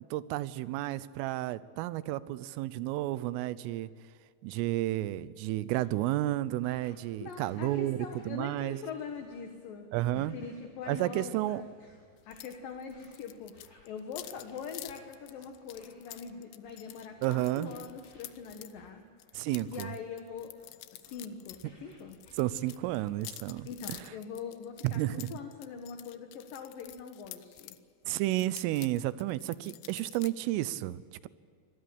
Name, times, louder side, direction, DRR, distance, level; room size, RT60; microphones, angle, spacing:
voice 1, 0.1-3.9 4.4-8.0 8.2-8.8 9.9-10.4 10.9-11.6 17.2-17.7 19.3-19.9 22.4-24.1 24.8-25.3 28.1-31.3, right 15 dB, 90° right, 16 dB, 3.4 m, -32 dB
sound 1, 5.7-24.1, left 1 dB, 20° left, 5.5 m, -63 dB
voice 2, 7.2-9.9 10.1-11.7 12.3-13.6 13.8-19.0 19.7-20.5 20.9-22.2 23.6-27.8, left 6 dB, 60° left, 5 dB, 2.5 m, -43 dB
sound 2, 12.3-12.6 12.8-18.7 19.2-21.7 21.9-27.8 28.2-30.3, left 16 dB, 80° left, 2.8 m, -49 dB
25.5 x 19.0 x 8.7 m, 2.2 s
omnidirectional pair, 5.7 m